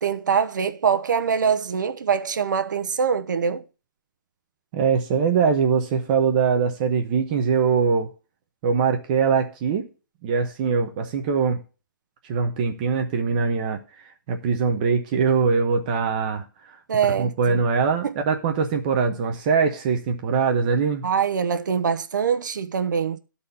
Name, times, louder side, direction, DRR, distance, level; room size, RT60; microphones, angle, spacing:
voice 1, 0.0-3.6 16.9-17.6 18.0-18.1 21.0-23.2, right 7 dB, 65° right, 0.9 m, -23 dB
voice 2, 4.7-8.1 8.6-9.9 10.2-11.6 12.2-16.8 17.2-21.0, right 5 dB, 25° right, 0.8 m, -22 dB
11.0 x 4.2 x 6.9 m
hypercardioid pair, 170°, 11 cm